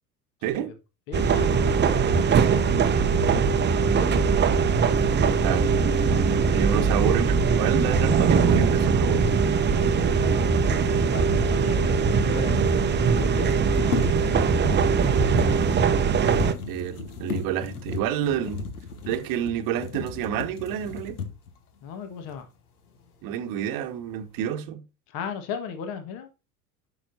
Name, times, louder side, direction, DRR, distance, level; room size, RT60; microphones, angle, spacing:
voice 1, 0.4-0.7 5.4-5.7 6.5-9.3 16.7-18.6 19.1-21.2 23.2-24.8, right 10 dB, 45° right, 1.2 m, -29 dB
voice 2, 1.1-3.6 3.9-4.2 5.4-5.7 6.6-6.8 9.7-15.6 21.8-22.5 25.1-26.3, left 6 dB, 50° left, 1.6 m, -38 dB
sound 1, 1.1-16.5, right 5 dB, 25° right, 0.8 m, -21 dB
sound 2, 4.9-11.6, right 1 dB, 5° right, 0.5 m, -32 dB
sound 3, 11.8-11.9 12.1-12.2 13.2-21.6 22.3-22.4 22.9-23.5 23.8-24.4, left 5 dB, 75° left, 1.5 m, -36 dB
9.7 x 6.1 x 2.7 m
figure-of-eight pair, 70°, 45 cm